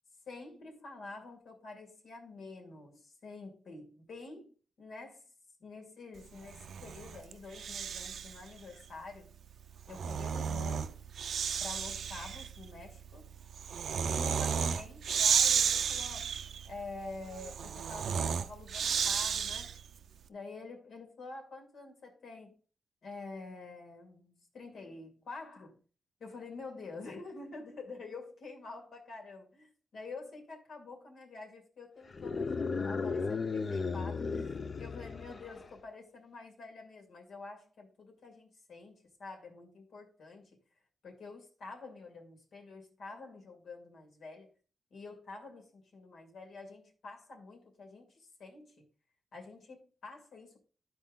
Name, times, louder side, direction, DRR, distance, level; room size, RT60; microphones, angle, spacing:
voice 1, 0.3-5.2 5.6-9.3 9.9-11.0 11.6-13.3 14.0-16.4 16.6-19.8 20.3-22.6 23.0-25.8 26.2-34.5 34.8-40.6 41.0-44.5 44.9-48.9 49.3-50.6, left 3 dB, 80° left, 2.3 m, -48 dB
Breathing, 6.4-8.4 9.7-19.9, right 7 dB, 80° right, 0.5 m, -33 dB
sound 1, 32.1-35.7, left 4 dB, 45° left, 0.5 m, -35 dB
12.0 x 4.5 x 3.8 m
wide cardioid pair, 120°, 0 cm